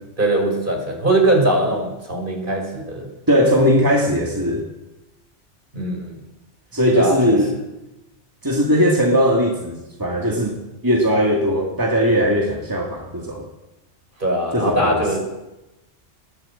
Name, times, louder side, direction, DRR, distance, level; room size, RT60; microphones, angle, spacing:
voice 1, 0.2-3.1 5.7-6.1 6.9-7.4 14.2-15.2, right 1 dB, 45° right, 2 dB, 5.5 m, -21 dB
voice 2, 3.3-4.6 6.7-7.5 8.4-13.4 14.5-15.2, equal, 15° right, -1 dB, 2.5 m, -19 dB
19.5 x 15.5 x 8.6 m, 1.0 s
omnidirectional pair, 1.2 m